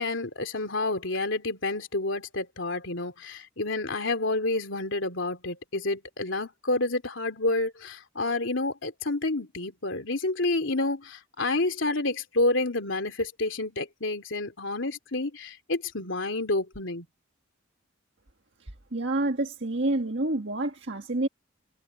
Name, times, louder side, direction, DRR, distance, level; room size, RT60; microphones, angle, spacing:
voice 1, 0.0-17.0, left 2 dB, 70° left, 3.1 m, -29 dB
voice 2, 18.9-21.3, right 2 dB, 60° right, 1.8 m, -28 dB
head